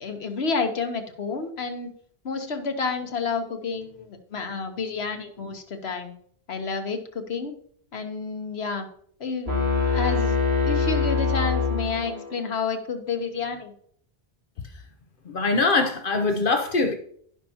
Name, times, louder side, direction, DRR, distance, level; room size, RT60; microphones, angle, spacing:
voice 1, 0.0-1.9 2.2-6.1 6.5-7.5 7.9-8.9 9.2-9.5 9.9-10.4 10.6-13.7, left 4 dB, 80° left, 6 dB, 1.3 m, -30 dB
sound 1, 9.5-12.4, left 4 dB, 80° right, 2.3 m, -24 dB
voice 2, 15.3-16.9, left 3 dB, 60° left, 6 dB, 0.9 m, -22 dB
16.0 x 5.6 x 2.8 m, 0.62 s
omnidirectional pair, 1.1 m